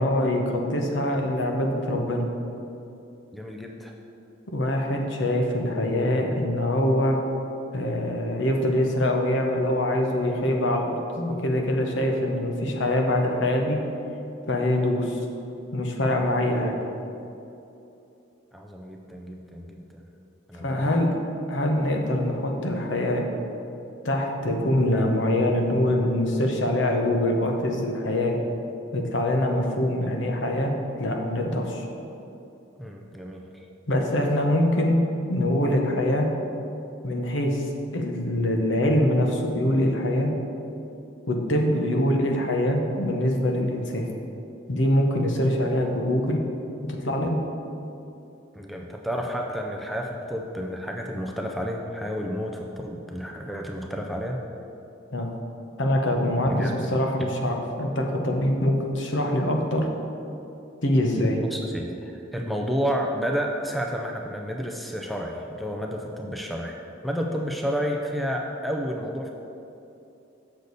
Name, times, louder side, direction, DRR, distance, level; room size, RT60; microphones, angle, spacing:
voice 1, 0.0-2.3 4.5-7.2 7.7-13.8 14.5-15.2 15.7-16.7 20.6-21.1 21.5-23.2 24.0-28.4 28.9-30.7 31.0-31.9 33.9-35.0 35.3-36.3 37.0-37.6 37.9-40.3 41.3-44.1 44.7-46.4 46.9-47.4 55.1-55.3 55.8-59.9 60.8-61.4, left 1 dB, 75° left, 2 dB, 0.9 m, -24 dB
voice 2, 3.3-3.9 18.5-20.0 20.5-20.9 32.8-33.7 48.5-54.4 56.4-57.0 61.4-66.8 67.0-69.3, equal, ahead, 1 dB, 0.4 m, -31 dB
6.7 x 6.5 x 4.0 m, 2.8 s
head